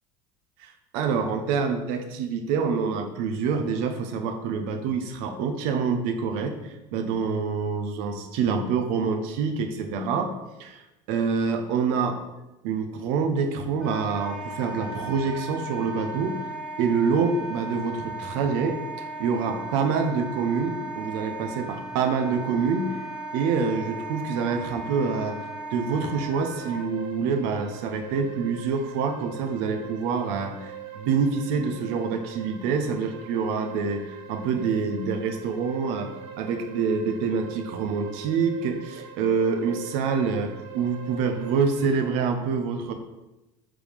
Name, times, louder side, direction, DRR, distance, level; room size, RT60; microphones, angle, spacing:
voice 1, 0.6-10.3 10.6-10.8 11.1-12.2 12.6-16.4 16.8-22.9 23.3-25.4 25.7-42.9, right 5 dB, 80° right, 6 dB, 0.8 m, -26 dB
Wind instrument woodwind instrument, 13.8-26.9, right 2 dB, 5° right, 0.7 m, -36 dB
sound 1, 25.8-42.2, right 8 dB, 50° right, 0.7 m, -43 dB
5.0 x 3.7 x 5.1 m, 1.0 s
cardioid pair, 175°, 13 cm